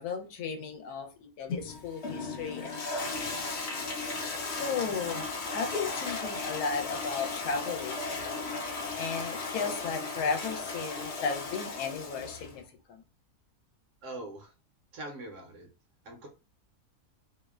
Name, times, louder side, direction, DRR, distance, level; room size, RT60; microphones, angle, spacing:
voice 1, 0.0-3.1 4.5-8.4 9.0-12.6 12.9-13.0, left 5 dB, 80° left, 1.1 m, -35 dB
Toilet flush, 1.5-12.6, left 3 dB, 60° left, 0.7 m, -36 dB
voice 2, 14.0-14.5 14.9-15.7 16.0-16.3, right 1 dB, 65° right, 0.9 m, -42 dB
2.7 x 2.1 x 2.2 m
omnidirectional pair, 1.6 m